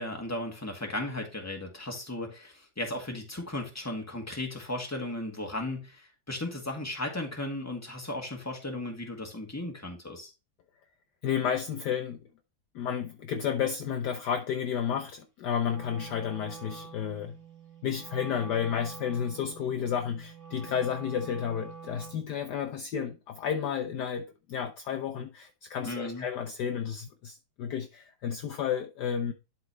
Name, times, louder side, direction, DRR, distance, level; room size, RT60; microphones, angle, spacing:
voice 1, 0.0-10.3 25.8-26.3, left 1 dB, 10° left, 1.9 m, -36 dB
voice 2, 11.2-12.2 12.7-17.4 17.8-29.3, left 8 dB, 65° left, 1.2 m, -32 dB
Wind instrument woodwind instrument, 15.6-22.3, right 5 dB, 10° right, 2.0 m, -46 dB
11.5 x 4.3 x 3.1 m
omnidirectional pair, 2.1 m